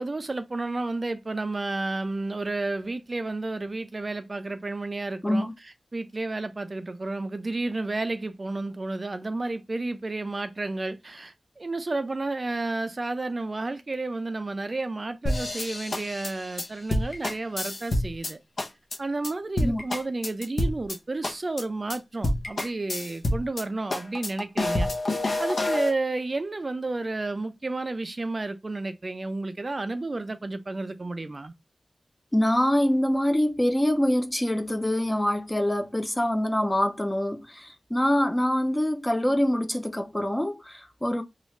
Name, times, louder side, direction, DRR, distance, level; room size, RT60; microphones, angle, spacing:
voice 1, 0.0-18.4 19.0-24.9 25.4-31.5, right 2 dB, 40° right, 0.3 m, -31 dB
sound 1, 15.2-18.3 18.6-19.0 19.2-19.3 19.6-21.0 21.2-21.6 21.9-22.0 22.2-23.6 23.9-25.9, left 1 dB, 75° left, 0.7 m, -28 dB
voice 2, 32.3-41.2, left 1 dB, 15° left, 0.5 m, -25 dB
3.0 x 2.3 x 3.0 m
wide cardioid pair, 85°, 0 cm